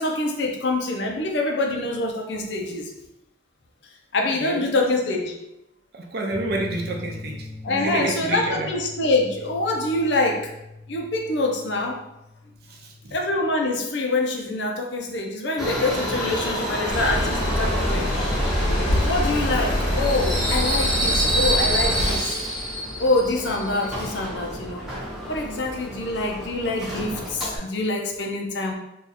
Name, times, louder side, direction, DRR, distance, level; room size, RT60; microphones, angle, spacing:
voice 1, 0.0-2.9 4.1-5.4 7.6-10.5 10.9-12.0 13.1-18.1 19.0-22.4 23.0-24.8 25.3-28.7, left 2 dB, 70° left, 1 dB, 0.6 m, -25 dB
voice 2, 5.9-7.4 7.7-8.7 12.7-13.2, right 2 dB, 55° right, 1 dB, 0.5 m, -29 dB
sound 1, 6.3-13.2, left 2 dB, 35° left, 0.7 m, -41 dB
Subway metro underground, 15.6-27.6, equal, ahead, 0.7 m, -28 dB
sound 2, 16.9-22.2, equal, 85° left, 1.2 m, -24 dB
2.8 x 2.4 x 4.0 m, 0.87 s
head